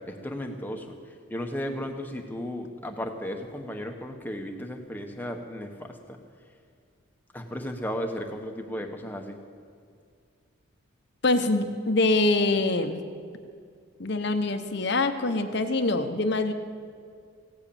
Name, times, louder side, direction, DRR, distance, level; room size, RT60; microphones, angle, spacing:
voice 1, 0.1-0.9 1.3-6.2 7.3-9.4, equal, 10° left, 4 dB, 1.1 m, -35 dB
voice 2, 11.2-13.0 14.0-16.5, left 2 dB, 55° left, 8 dB, 1.0 m, -24 dB
16.5 x 8.1 x 8.6 m, 2.2 s
head